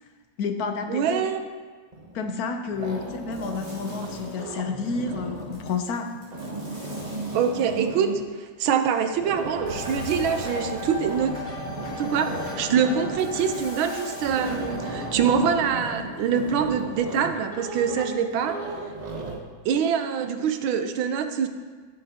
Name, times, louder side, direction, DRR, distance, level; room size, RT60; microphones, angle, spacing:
voice 1, 0.4-1.2 2.1-6.1 17.9-18.0, left 4 dB, 65° left, 6 dB, 0.9 m, -30 dB
voice 2, 0.9-1.4 7.3-8.1 8.4-11.3 12.0-18.6 19.6-21.5, right 7 dB, 90° right, 7 dB, 1.5 m, -24 dB
sound 1, 1.9-2.4 2.7-5.7 6.1-8.3 9.1-19.4, right 2 dB, 40° right, 0.6 m, -35 dB
sound 2, 3.3-4.7 5.4-7.9 9.6-11.4 13.2-14.9, equal, 20° left, 2.5 m, -49 dB
sound 3, 9.6-15.2, left 2 dB, 45° left, 3.7 m, -36 dB
15.0 x 6.6 x 2.8 m, 1.5 s
omnidirectional pair, 2.1 m